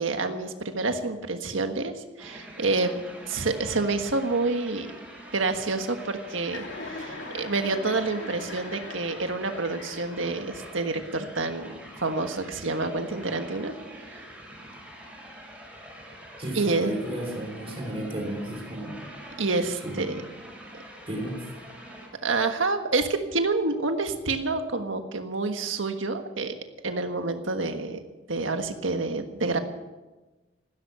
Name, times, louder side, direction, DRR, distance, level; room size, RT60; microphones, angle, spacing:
voice 1, 0.0-2.9 3.3-4.9 5.3-14.3 16.5-16.9 19.4-20.2 22.2-26.5 26.8-28.0 28.3-29.6, right 3 dB, 80° right, 6 dB, 1.5 m, -28 dB
sound 1, 2.2-22.1, equal, 5° right, 5.7 m, -45 dB
Chuckle chortle, 6.4-10.5, left 3 dB, 70° left, 2.3 m, -40 dB
voice 2, 16.4-19.0 19.8-20.2 21.1-21.5, right 1 dB, 30° right, 3 dB, 3.6 m, -33 dB
15.5 x 13.0 x 6.9 m, 1.2 s
head